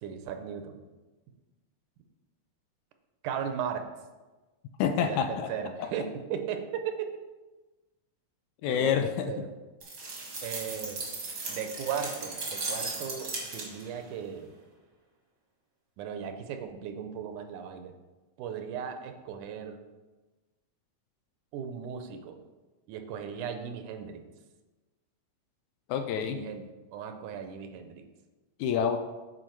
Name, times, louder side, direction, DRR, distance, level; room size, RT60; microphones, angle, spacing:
voice 1, 0.0-0.8 3.2-3.9 5.0-7.1 8.7-9.5 10.4-11.0 11.5-14.5 16.0-17.9 18.4-19.8 21.5-22.4 22.9-24.2 26.2-26.6 26.9-28.0, right 8 dB, 80° right, 7 dB, 2.1 m, -37 dB
voice 2, 4.8-5.5 5.8-5.9 8.6-9.3 25.9-26.4 28.6-29.0, left 8 dB, 80° left, 6 dB, 1.8 m, -27 dB
sound 1, 9.8-14.0, right 3 dB, 40° right, 1.3 m, -37 dB
9.0 x 4.4 x 4.5 m, 1.2 s
omnidirectional pair, 3.6 m